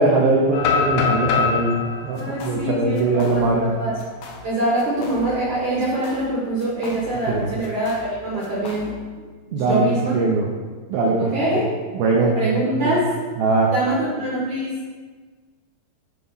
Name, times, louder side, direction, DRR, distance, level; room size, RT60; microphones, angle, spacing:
voice 1, 0.0-3.7 7.3-7.5 9.5-10.5 10.9-11.5 11.9-12.4 12.7-13.0 13.4-13.7, right 3 dB, 80° right, -2 dB, 2.2 m, -21 dB
sound 1, 0.5-4.4 4.9-5.0 5.5-5.8 7.1-8.0, left 6 dB, 90° left, 3.3 m, -25 dB
sound 2, 2.1-2.7 2.9-3.7 4.0-4.5 4.8-5.5 5.8-7.3 7.6-9.1, left 4 dB, 70° left, 2.0 m, -40 dB
voice 2, 2.2-3.0 3.3-3.4 3.8-3.9 4.4-8.9 9.5-10.1 11.2-11.6 12.4-13.1 13.7-14.8, right 1 dB, 65° right, -6 dB, 1.9 m, -24 dB
8.2 x 4.6 x 5.5 m, 1.4 s
omnidirectional pair, 5.2 m